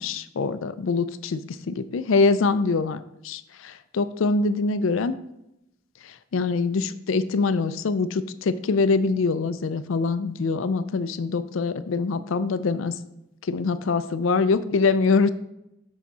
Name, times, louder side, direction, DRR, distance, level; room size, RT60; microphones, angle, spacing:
voice 1, 0.0-1.4 1.7-3.0 3.2-5.2 6.0-13.0 13.5-15.3, left 4 dB, 90° left, 13 dB, 0.4 m, -24 dB
6.0 x 5.7 x 4.2 m, 0.84 s
head